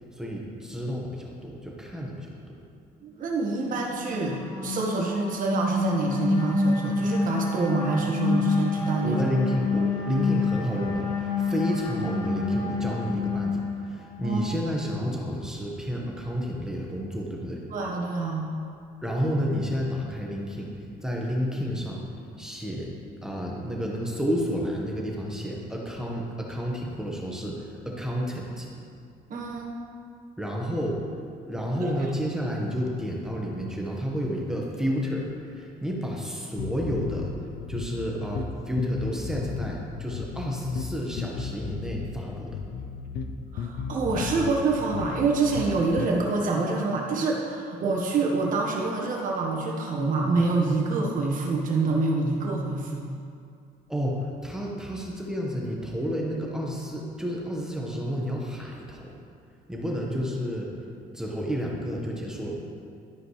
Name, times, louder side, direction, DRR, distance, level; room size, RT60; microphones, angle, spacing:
voice 1, 0.1-2.6 9.0-17.6 19.0-20.7 21.0-22.0 22.4-22.9 23.2-28.7 30.4-31.0 31.4-37.3 37.7-42.6 53.9-59.1 59.7-60.7 61.1-62.5, equal, 5° right, -2 dB, 1.3 m, -30 dB
voice 2, 3.0-9.2 14.2-14.5 17.7-18.5 29.3-29.7 31.8-31.9 43.5-53.1, right 3 dB, 50° right, -1 dB, 1.5 m, -26 dB
sound 1, 3.6-14.2, left 3 dB, 30° left, 2.0 m, -28 dB
sound 2, 36.6-46.1, left 6 dB, 75° left, 0.6 m, -35 dB
12.5 x 5.1 x 3.2 m, 2.4 s
cardioid pair, 110°, 17 cm